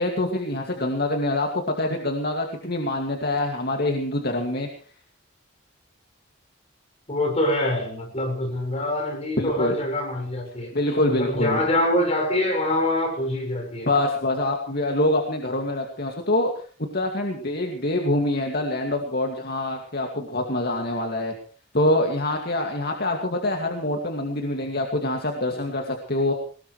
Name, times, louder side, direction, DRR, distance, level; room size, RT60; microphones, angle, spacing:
voice 1, 0.0-4.7 9.4-9.8 10.7-11.6 13.9-16.5 16.9-21.3 21.7-26.3, left 1 dB, 50° left, 2.4 m, -25 dB
voice 2, 7.1-10.7 11.1-13.9, left 1 dB, 35° left, 6.6 m, -25 dB
21.5 x 20.5 x 3.3 m
head